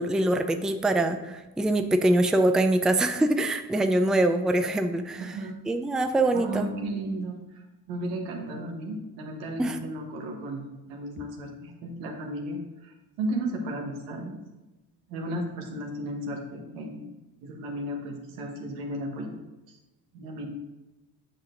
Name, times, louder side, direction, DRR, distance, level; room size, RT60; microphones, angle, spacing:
voice 1, 0.0-5.4 5.7-6.7 9.6-9.8, right 1 dB, ahead, 7 dB, 0.5 m, -24 dB
voice 2, 5.2-5.6 6.3-14.4 15.1-17.1 17.4-19.3 19.7-19.8 20.1-20.5, right 1 dB, 80° right, 1 dB, 1.2 m, -34 dB
8.5 x 5.7 x 2.6 m, 1.1 s
hypercardioid pair, 45°, 49 cm